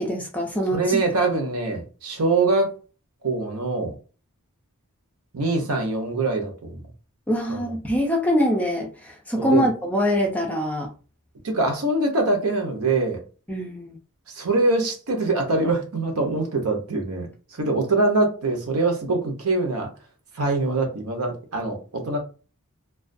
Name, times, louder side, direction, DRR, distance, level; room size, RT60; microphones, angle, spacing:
voice 1, 0.0-1.0 7.3-10.9 13.5-14.0, equal, 5° left, 0.4 m, -24 dB
voice 2, 0.7-2.7 3.2-4.0 5.3-6.8 7.5-7.6 9.4-9.7 11.4-13.2 14.3-19.9 20.4-22.2, right 2 dB, 75° right, 0.7 m, -23 dB
2.3 x 2.2 x 2.5 m
head